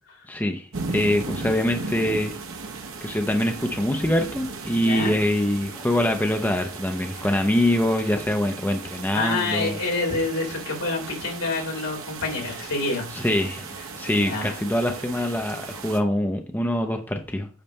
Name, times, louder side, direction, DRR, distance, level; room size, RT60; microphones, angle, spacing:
voice 1, 0.3-2.3 3.0-9.8 13.1-13.7 13.9-17.5, left 1 dB, 10° left, 4 dB, 0.6 m, -24 dB
sound 1, 0.7-16.0, right 4 dB, 65° right, 1.0 m, -36 dB
voice 2, 9.1-13.1 14.2-14.6, left 3 dB, 70° left, -1 dB, 3.3 m, -27 dB
8.7 x 3.3 x 5.4 m, 0.38 s
head